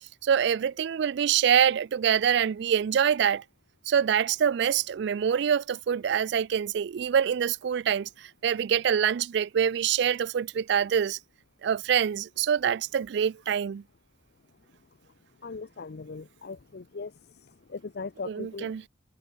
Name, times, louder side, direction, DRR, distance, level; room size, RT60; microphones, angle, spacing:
voice 1, 0.2-3.4 3.9-11.2 11.6-13.8 18.2-18.8, right 8 dB, 65° right, 0.3 m, -25 dB
voice 2, 15.4-17.1 17.7-18.7, left 4 dB, 60° left, 0.6 m, -39 dB
head